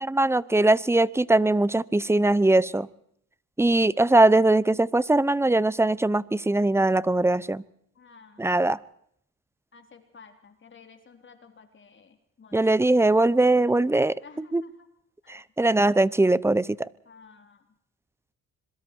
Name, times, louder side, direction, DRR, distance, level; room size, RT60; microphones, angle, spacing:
voice 1, 0.0-2.9 3.6-7.6 8.4-8.8 12.5-14.1 14.5-14.6 15.3-16.9, right 2 dB, 10° right, 20 dB, 0.8 m, -21 dB
voice 2, 8.0-8.7 9.7-12.9 14.2-14.9 15.2-15.4 17.1-17.7, left 5 dB, 40° left, 6 dB, 3.6 m, -52 dB
26.0 x 23.0 x 4.6 m, 0.70 s
cardioid pair, 90°, 30 cm